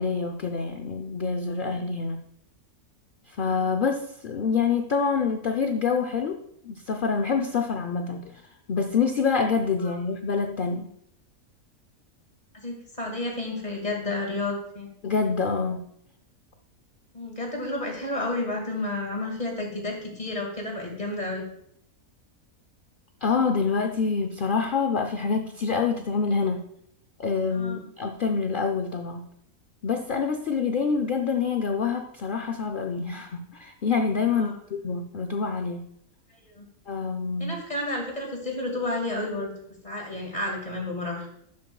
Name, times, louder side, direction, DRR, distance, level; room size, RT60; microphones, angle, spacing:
voice 1, 0.0-2.2 3.3-6.4 6.6-8.4 8.7-10.9 15.0-15.9 23.2-26.7 27.2-29.3 29.8-35.9 36.9-37.6, left 5 dB, 60° left, 5 dB, 0.5 m, -26 dB
voice 2, 12.5-14.9 17.1-21.4 27.5-27.8 34.3-34.5 36.4-36.7 37.4-39.5 39.8-41.3, left 2 dB, 25° left, 1 dB, 2.2 m, -31 dB
12.0 x 8.5 x 2.3 m, 0.72 s
omnidirectional pair, 1.6 m